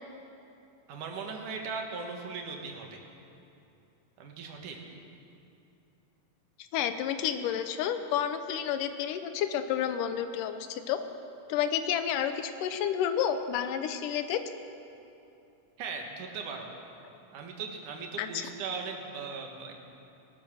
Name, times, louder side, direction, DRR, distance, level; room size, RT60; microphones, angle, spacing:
voice 1, 0.9-3.0 4.2-4.8 15.8-16.7 17.3-19.7, right 5 dB, 75° right, 2 dB, 3.0 m, -38 dB
voice 2, 6.7-11.0 11.5-14.4 18.2-18.5, left 9 dB, 85° left, 9 dB, 2.3 m, -30 dB
18.0 x 12.5 x 6.2 m, 2.7 s
omnidirectional pair, 3.8 m